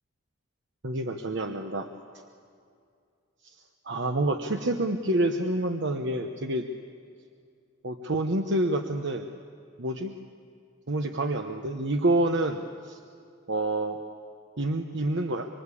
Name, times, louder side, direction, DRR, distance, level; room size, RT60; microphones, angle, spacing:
voice 1, 0.8-1.9 3.4-3.6 3.8-6.6 7.8-9.3 9.8-10.1 10.9-13.0 13.5-14.0 14.6-15.5, right 1 dB, 65° right, 5 dB, 1.1 m, -28 dB
25.0 x 25.0 x 8.5 m, 2.4 s
head